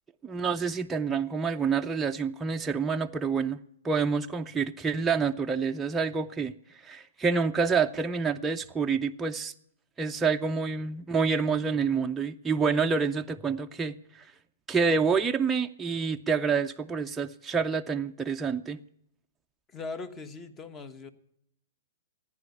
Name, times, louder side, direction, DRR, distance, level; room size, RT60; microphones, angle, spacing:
voice 1, 0.2-3.6 3.8-6.5 6.8-9.5 10.0-14.3 14.7-18.8, right 5 dB, 10° right, 3 dB, 0.5 m, -28 dB
voice 2, 19.7-21.1, left 4 dB, 20° left, 13 dB, 1.2 m, -40 dB
15.5 x 9.8 x 7.0 m, 0.71 s
hypercardioid pair, 125°, 0 cm